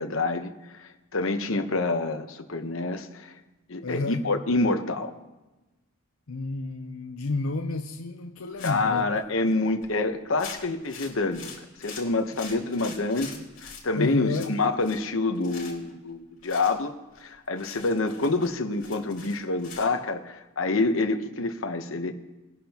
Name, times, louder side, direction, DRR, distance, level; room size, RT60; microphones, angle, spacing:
voice 1, 0.0-3.3 3.7-5.1 8.6-11.5 11.8-16.9 17.2-22.1, left 3 dB, 70° left, 7 dB, 1.0 m, -27 dB
voice 2, 3.8-4.3 6.3-9.2 14.0-14.5, left 3 dB, 85° left, 4 dB, 0.7 m, -31 dB
sound 1, 8.6-9.0 9.5-9.6 9.8-10.0 10.4-13.8 14.3-15.1 15.3-15.9 16.4-16.7 17.2-17.3 17.6-19.9, left 5 dB, 40° left, 5.0 m, -43 dB
22.0 x 11.0 x 3.0 m, 1.1 s
head